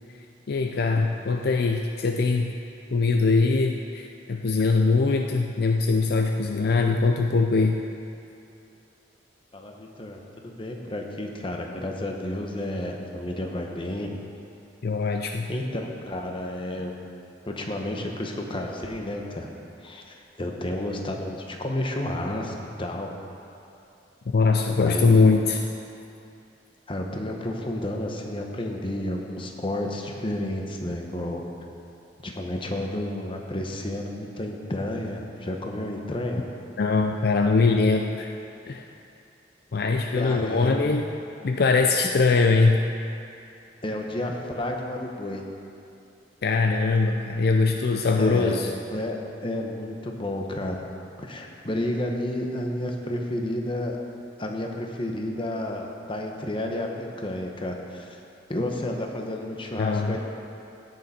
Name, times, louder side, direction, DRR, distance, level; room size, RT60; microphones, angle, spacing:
voice 1, 0.5-2.5 2.9-7.8 14.8-15.5 24.3-25.6 36.8-38.3 38.7-38.8 39.7-41.1 41.4-42.8 46.4-48.7 59.8-60.2, left 4 dB, 60° left, 3 dB, 0.4 m, -22 dB
voice 2, 9.5-14.2 15.5-16.9 17.5-19.5 19.8-23.1 24.8-25.2 26.9-31.4 32.2-36.5 40.1-40.8 43.8-45.4 48.2-48.6 48.9-49.2 49.4-50.8 51.2-54.0 54.4-58.1 58.5-60.2, left 1 dB, 30° left, 1 dB, 1.0 m, -31 dB
16.5 x 6.7 x 4.3 m, 2.6 s
head